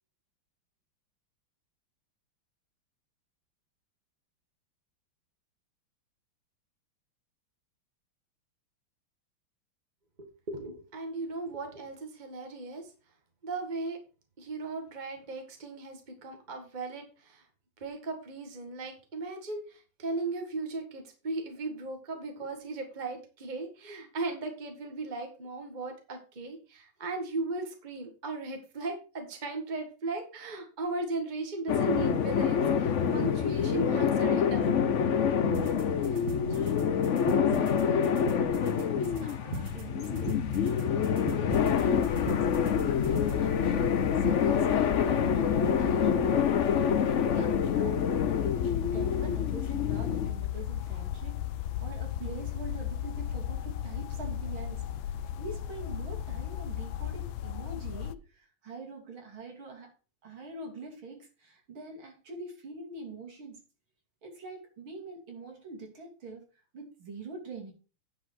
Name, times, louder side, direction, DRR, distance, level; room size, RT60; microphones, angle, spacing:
voice 1, 10.2-12.9 13.4-14.0 14.4-17.4 17.8-35.3, right 3 dB, 20° right, 1.8 m, -37 dB
sound 1, 31.7-50.3, left 7 dB, 60° left, 0.8 m, -27 dB
sound 2, 35.5-43.5, right 5 dB, 55° right, 1.9 m, -42 dB
voice 2, 36.0-40.3 40.9-46.2 46.6-48.0 48.4-51.4 51.8-54.8 55.4-59.9 60.2-63.6 64.2-66.4 66.7-67.7, right 3 dB, 75° right, 3.6 m, -44 dB
sound 3, 41.5-58.1, left 11 dB, 75° left, 1.3 m, -36 dB
10.0 x 4.9 x 5.9 m
omnidirectional pair, 2.3 m